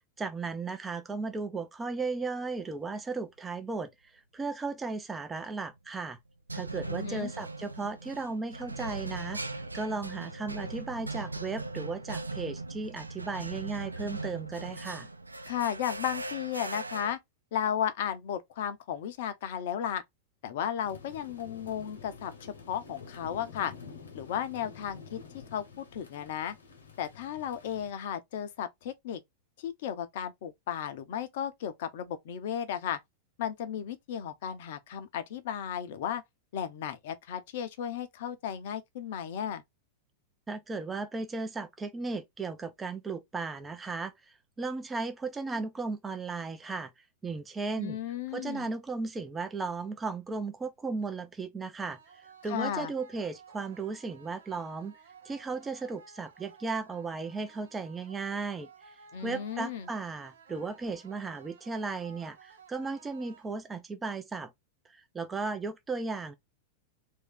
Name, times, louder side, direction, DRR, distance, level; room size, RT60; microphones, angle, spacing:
voice 1, 0.2-3.9 4.3-6.2 6.5-15.1 40.5-44.1 44.6-46.9 47.2-48.0 48.3-54.9 55.2-58.7 59.2-64.5 64.9-66.3, right 4 dB, 15° right, 0.6 m, -35 dB
sound 1, 5.4-5.7 6.5-17.1, right 2 dB, 90° right, 0.4 m, -39 dB
voice 2, 6.9-7.3 15.5-17.2 17.5-20.0 20.4-23.7 24.1-25.2 25.5-26.5 27.0-29.2 29.6-33.0 33.4-36.2 36.5-39.6 47.8-48.7 52.5-52.9 59.1-59.9, left 9 dB, 55° left, 0.7 m, -34 dB
sound 2, 20.8-27.9, left 5 dB, 75° left, 1.1 m, -49 dB
sound 3, 51.8-63.8, right 6 dB, 70° right, 0.8 m, -55 dB
3.1 x 2.7 x 3.5 m
figure-of-eight pair, 95°, 0 cm